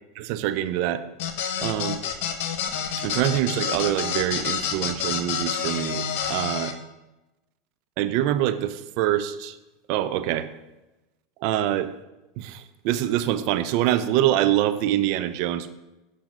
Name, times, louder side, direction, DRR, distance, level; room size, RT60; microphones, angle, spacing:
voice 1, 0.2-1.0 1.6-2.0 3.0-6.7 8.0-9.6 9.9-10.5 11.4-11.9 12.4-15.7, right 12 dB, 60° right, 10 dB, 0.7 m, -25 dB
sound 1, 1.2-6.7, left 8 dB, 60° left, 1.3 m, -28 dB
16.5 x 5.7 x 3.9 m, 1.0 s
hypercardioid pair, 85°, 0 cm